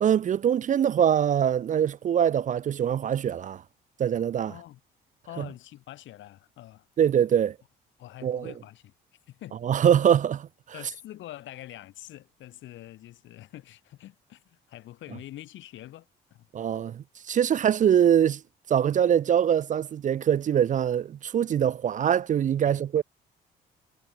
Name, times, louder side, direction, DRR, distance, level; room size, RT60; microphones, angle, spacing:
voice 1, 0.0-3.6 4.0-4.5 5.4-5.5 7.0-7.6 8.2-8.5 9.6-10.5 16.5-18.4 18.7-23.0, right 9 dB, 40° right, 0.4 m, -23 dB
voice 2, 4.5-4.8 5.2-6.9 8.0-8.9 9.3-9.6 10.7-16.5 22.6-22.8, left 14 dB, 75° left, 6.4 m, -45 dB
supercardioid pair, 70°, 20 cm